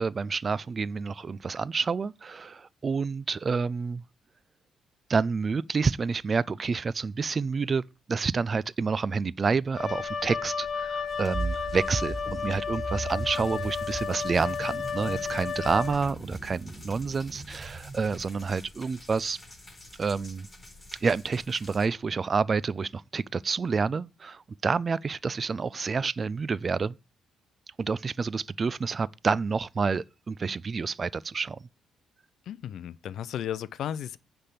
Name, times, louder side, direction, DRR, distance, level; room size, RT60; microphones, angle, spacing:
voice 1, 0.0-4.0 5.1-7.8 8.1-19.4 20.0-20.5 21.0-27.0 27.8-31.6, right 5 dB, 35° right, 0.3 m, -28 dB
Wind instrument woodwind instrument, 9.7-16.3, left 6 dB, 40° left, 1.2 m, -33 dB
sound 1, 11.1-21.9, left 2 dB, 15° left, 4.2 m, -50 dB
sound 2, 11.3-18.2, right 3 dB, 5° right, 3.3 m, -38 dB
voice 2, 32.5-34.2, left 10 dB, 70° left, 0.5 m, -34 dB
9.9 x 3.4 x 6.8 m
cardioid pair, 90°, 0 cm